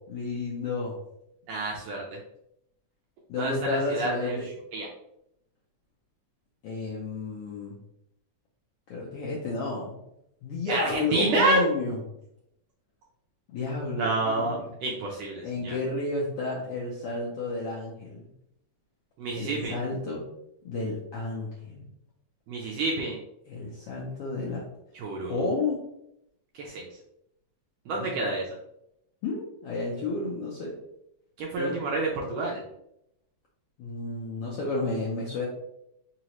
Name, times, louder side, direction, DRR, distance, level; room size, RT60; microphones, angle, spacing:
voice 1, 0.1-1.0 3.3-4.5 6.6-7.8 8.9-10.0 10.4-12.0 13.5-14.7 15.4-18.3 19.4-20.3 20.6-21.8 23.5-24.7 25.3-25.8 29.2-30.8 31.6-31.7 33.8-35.4, left 3 dB, 75° left, -4 dB, 1.3 m, -31 dB
voice 2, 1.5-2.2 3.4-4.4 4.7-4.9 10.7-11.6 14.0-15.8 19.2-19.7 22.5-23.2 24.9-25.3 26.5-26.9 27.9-28.5 31.4-32.6, right 2 dB, 80° right, -1 dB, 1.5 m, -28 dB
4.7 x 3.0 x 2.9 m, 0.80 s
omnidirectional pair, 3.5 m